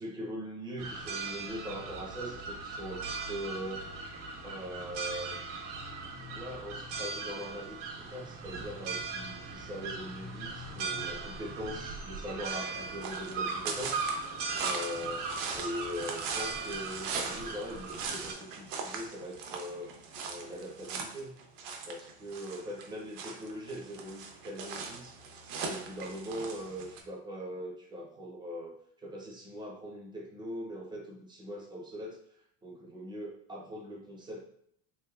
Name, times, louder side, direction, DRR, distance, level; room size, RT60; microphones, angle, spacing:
voice 1, 0.0-3.9 4.4-5.4 6.3-14.1 14.6-15.3 15.5-19.9 20.2-21.4 21.9-25.2 25.6-34.4, equal, 15° right, -2 dB, 0.4 m, -41 dB
sound 1, 0.8-18.3, right 4 dB, 90° right, 1.1 m, -39 dB
sound 2, 12.7-27.0, right 5 dB, 70° right, 0.7 m, -40 dB
3.4 x 3.2 x 2.3 m, 0.70 s
cardioid pair, 160°, 36 cm